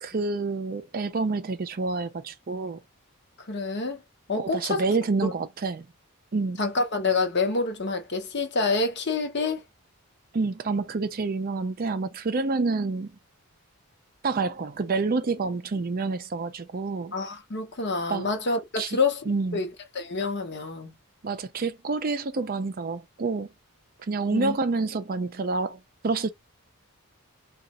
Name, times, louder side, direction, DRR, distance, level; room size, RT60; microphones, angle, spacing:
voice 1, 0.0-2.8 4.4-5.9 6.3-6.6 10.3-13.1 14.2-17.2 18.1-18.3 18.8-19.0 19.3-19.6 21.2-23.5 24.1-26.3, right 3 dB, 40° right, 0.4 m, -28 dB
voice 2, 3.5-4.0 4.3-4.9 5.2-5.3 6.6-9.6 17.1-19.2 19.5-19.7 19.9-20.9 24.3-24.6, left 3 dB, 50° left, 0.9 m, -27 dB
3.8 x 2.3 x 4.1 m
head